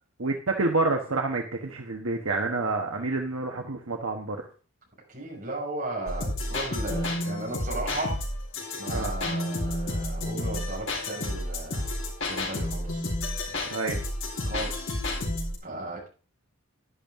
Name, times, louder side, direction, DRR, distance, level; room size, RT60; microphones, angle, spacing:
voice 1, 0.2-4.4 8.9-9.2 13.7-14.0, right 3 dB, 70° right, 2 dB, 1.2 m, -28 dB
voice 2, 5.1-8.1 8.8-11.8 12.3-13.0 14.4-14.9 15.6-16.1, right 2 dB, 40° right, -3 dB, 5.8 m, -35 dB
sound 1, 6.1-15.6, left 1 dB, 70° left, 4.3 m, -31 dB
11.0 x 10.5 x 3.6 m, 0.37 s
head